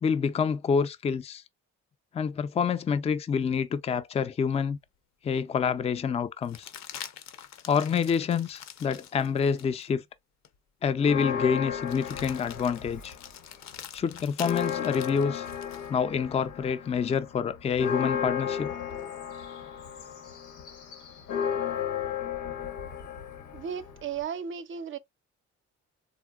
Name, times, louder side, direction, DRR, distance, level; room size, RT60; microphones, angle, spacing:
voice 1, 0.0-1.4 2.1-4.8 5.2-6.7 7.7-10.0 10.8-13.1 13.9-15.5 15.9-18.7, left 6 dB, 20° left, 0.3 m, -27 dB
sound 1, 4.9-5.0 6.4-9.9 10.4-10.6 11.8-15.9 18.1-19.0, left 9 dB, 65° left, 0.6 m, -45 dB
Church bell, 11.0-13.4 13.7-13.8 14.2-24.2, left 8 dB, 85° left, 1.0 m, -34 dB
voice 2, 23.5-25.0, right 7 dB, 40° right, 0.4 m, -35 dB
3.7 x 2.1 x 2.2 m
cardioid pair, 90°, 30 cm